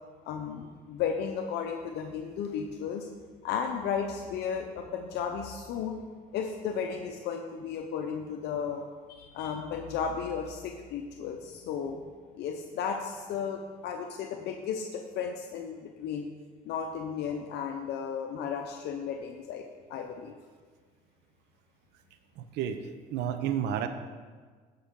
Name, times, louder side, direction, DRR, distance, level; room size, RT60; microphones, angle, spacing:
voice 1, 0.2-3.1 3.4-6.0 6.3-8.8 9.1-12.0 12.3-16.3 16.6-19.6 19.9-20.3, left 7 dB, 80° left, 3 dB, 0.8 m, -34 dB
voice 2, 22.4-23.9, right 9 dB, 85° right, 9 dB, 0.8 m, -31 dB
15.5 x 5.6 x 3.7 m, 1.5 s
cardioid pair, 110°, 17 cm